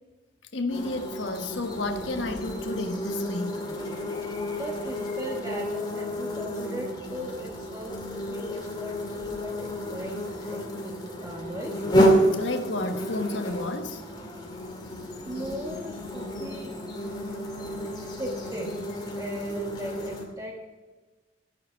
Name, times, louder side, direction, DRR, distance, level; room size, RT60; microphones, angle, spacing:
voice 1, 0.5-3.6 12.3-14.0, left 2 dB, 80° left, 6 dB, 1.4 m, -31 dB
sound 1, 0.7-20.2, equal, 25° left, 2.3 m, -30 dB
voice 2, 4.6-11.9 15.3-16.8 17.8-17.9 18.2-18.8 19.2-20.8, equal, 20° right, -1 dB, 1.5 m, -38 dB
14.5 x 8.7 x 4.5 m, 1.3 s
head